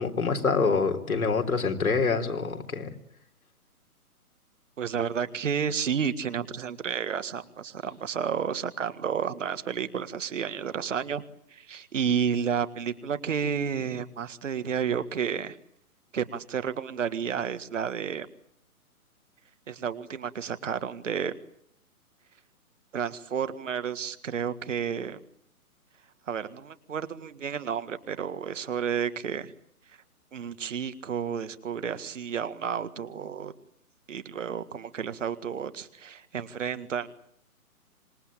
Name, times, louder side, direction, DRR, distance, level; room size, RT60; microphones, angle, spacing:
voice 1, 0.0-2.9, left 4 dB, 70° left, 5 dB, 4.0 m, -26 dB
voice 2, 4.8-11.2 11.5-15.6 16.1-18.3 19.7-21.4 22.9-25.2 26.3-29.5 29.9-30.0 30.3-33.5 34.1-37.1, right 7 dB, 55° right, 11 dB, 1.9 m, -31 dB
26.5 x 20.0 x 8.8 m, 0.71 s
figure-of-eight pair, 135°, 44 cm